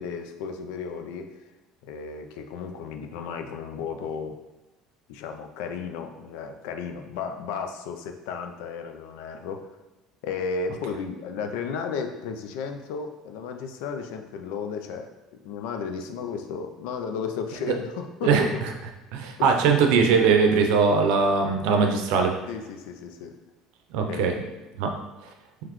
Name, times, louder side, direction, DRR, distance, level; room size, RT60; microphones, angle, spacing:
voice 1, 0.0-1.3 1.8-4.4 5.1-9.7 10.2-15.1 15.4-18.6 19.4-19.7 22.5-23.4 24.1-24.7, left 5 dB, 85° left, 6 dB, 0.4 m, -34 dB
voice 2, 19.1-22.4 23.9-24.3 24.8-24.9, right 5 dB, 80° right, 4 dB, 0.5 m, -20 dB
3.9 x 3.0 x 3.0 m, 1.1 s
cardioid pair, 155°, 0 cm